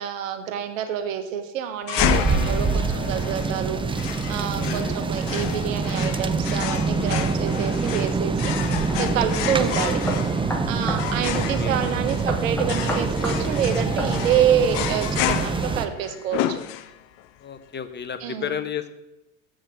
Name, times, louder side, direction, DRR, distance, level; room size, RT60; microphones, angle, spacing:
voice 1, 0.0-10.0 10.7-16.6 18.2-18.5, right 9 dB, 75° right, 7 dB, 1.4 m, -27 dB
sound 1, 1.9-17.2, left 12 dB, 55° left, 0.8 m, -31 dB
sound 2, 2.0-15.9, right 4 dB, 15° right, 0.7 m, -25 dB
voice 2, 2.1-2.5 4.5-5.0 9.7-10.3 11.2-12.0 17.4-19.0, left 8 dB, 25° left, 10 dB, 1.1 m, -34 dB
sound 3, 8.9-9.0 9.6-9.7 10.1-11.1 11.3-11.5 12.3-13.4 14.0-14.1, equal, 5° left, 2.7 m, -29 dB
7.7 x 6.4 x 7.6 m, 0.98 s
hypercardioid pair, 80°, 40 cm